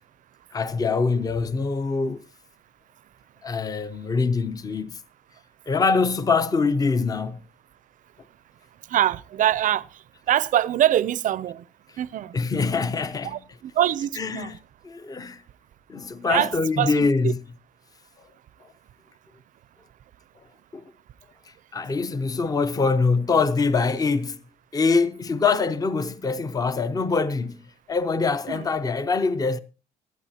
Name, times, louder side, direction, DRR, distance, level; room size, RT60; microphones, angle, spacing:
voice 1, 0.5-2.2 3.4-5.0 5.7-7.4 12.3-13.4 14.2-14.6 14.8-15.4 15.9-17.4 20.7-20.8 21.7-24.4 24.7-27.6 27.9-29.6, left 4 dB, 20° left, 0.7 m, -24 dB
voice 2, 8.9-9.9 10.3-11.6 12.0-12.4 13.2-14.6 16.2-16.5 16.8-17.3 28.5-28.7, right 12 dB, 50° right, 0.5 m, -24 dB
17.5 x 11.5 x 2.8 m
cardioid pair, 110°, 17 cm